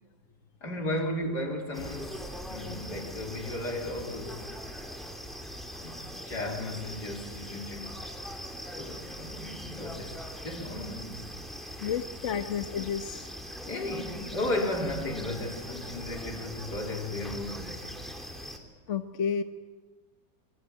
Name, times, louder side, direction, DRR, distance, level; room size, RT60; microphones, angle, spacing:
voice 1, 0.6-4.5 5.8-8.1 8.7-11.3 11.8-11.9 12.3-12.4 13.7-18.0, left 1 dB, 70° left, 4.2 m, -35 dB
sound 1, 1.7-18.6, equal, ahead, 2.9 m, -41 dB
voice 2, 11.8-13.3 18.9-19.4, left 7 dB, 50° left, 1.2 m, -31 dB
23.5 x 22.5 x 8.8 m
omnidirectional pair, 1.8 m